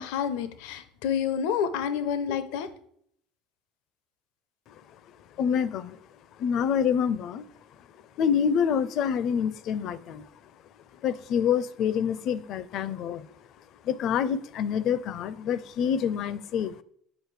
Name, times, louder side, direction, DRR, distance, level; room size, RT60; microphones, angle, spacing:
voice 1, 0.0-2.7, left 8 dB, 80° left, 12 dB, 0.7 m, -29 dB
voice 2, 5.4-6.0 6.4-7.4 8.2-10.3 11.0-13.3 13.8-16.8, left 7 dB, 50° left, 17 dB, 0.5 m, -27 dB
8.2 x 5.2 x 4.8 m, 0.66 s
cardioid pair, 145°, 0 cm